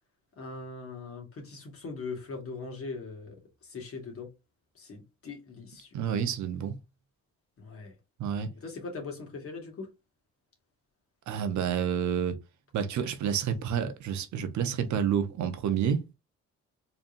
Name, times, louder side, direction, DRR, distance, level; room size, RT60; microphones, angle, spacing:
voice 1, 0.4-3.3 3.7-4.3 4.8-5.9 7.6-7.9 8.6-9.9, left 4 dB, 50° left, 1.8 m, -40 dB
voice 2, 5.9-6.8 8.2-8.5 11.3-12.4 12.7-16.0, right 8 dB, 70° right, 0.8 m, -29 dB
4.1 x 3.3 x 2.5 m
cardioid pair, 90°, 30 cm